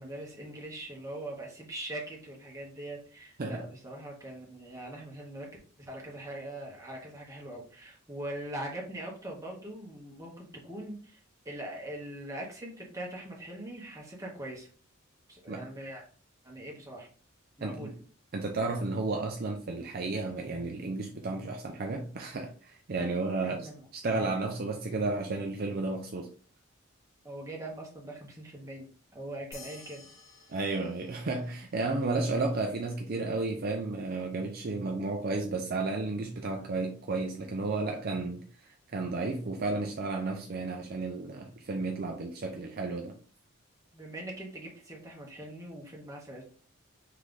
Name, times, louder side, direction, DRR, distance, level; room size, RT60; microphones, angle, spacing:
voice 1, 0.0-5.5 5.8-14.7 15.3-16.0 16.4-17.1 17.6-17.9 23.4-23.8 24.2-24.3 27.2-28.9 29.1-30.1 43.9-46.4, right 1 dB, 15° right, 1.1 m, -42 dB
voice 2, 17.6-17.9 18.3-23.7 23.9-26.3 30.5-43.2, right 3 dB, 45° right, 0.5 m, -33 dB
sound 1, 29.5-32.3, left 4 dB, 70° left, 1.3 m, -53 dB
3.8 x 3.2 x 3.6 m
head